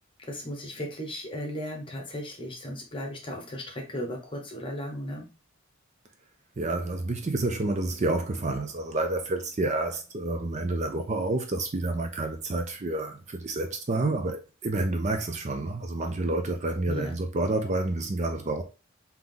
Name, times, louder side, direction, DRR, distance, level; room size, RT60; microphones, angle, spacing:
voice 1, 0.2-5.3 16.9-17.2, equal, 25° left, 1.0 m, -36 dB
voice 2, 6.6-18.6, right 2 dB, 35° right, 0.5 m, -29 dB
3.7 x 2.9 x 3.7 m
head